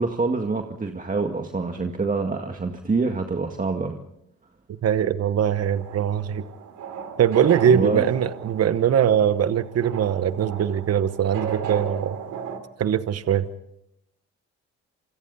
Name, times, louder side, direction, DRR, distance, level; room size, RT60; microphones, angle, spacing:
voice 1, 0.0-4.0 7.7-8.0, right 3 dB, 25° right, 4 dB, 2.0 m, -26 dB
voice 2, 4.8-6.4 7.2-12.2 12.8-13.5, right 9 dB, 55° right, 12 dB, 1.1 m, -21 dB
sound 1, 5.4-12.6, right 7 dB, 80° right, 2.9 m, -35 dB
29.0 x 26.5 x 4.2 m, 0.80 s
supercardioid pair, 70°, 30 cm